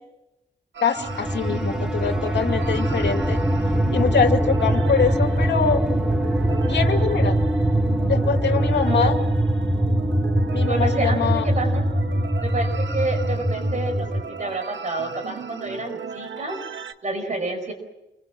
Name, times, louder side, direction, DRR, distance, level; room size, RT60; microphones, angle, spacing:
sound 1, 0.7-16.9, right 6 dB, 80° right, 1.5 m, -36 dB
voice 1, 0.8-3.4 3.9-5.8 6.6-7.5 8.1-9.1 10.5-11.5, left 6 dB, 65° left, 5 dB, 2.4 m, -24 dB
sound 2, 1.0-14.3, right 1 dB, 5° right, 0.9 m, -22 dB
voice 2, 10.7-11.8 12.4-16.6 17.0-17.7, right 2 dB, 40° right, 6 dB, 5.3 m, -28 dB
28.5 x 25.0 x 6.1 m, 0.93 s
wide cardioid pair, 145°, 19 cm